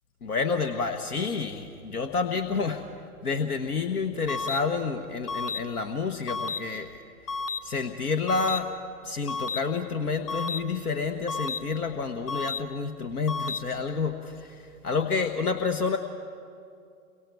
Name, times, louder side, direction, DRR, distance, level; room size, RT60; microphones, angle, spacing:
voice 1, 0.2-2.9 3.2-7.0 7.6-8.8 9.0-16.0, left 4 dB, 80° left, 7 dB, 1.4 m, -29 dB
sound 1, 4.3-4.6 5.3-5.6 6.3-6.6 7.3-7.6 8.3-8.6 9.3-9.6 10.3-10.6 11.3-11.6 12.3-12.6 13.3-13.6, left 4 dB, 25° left, 0.7 m, -31 dB
30.0 x 23.5 x 4.7 m, 2.4 s
hypercardioid pair, 125°, 45 cm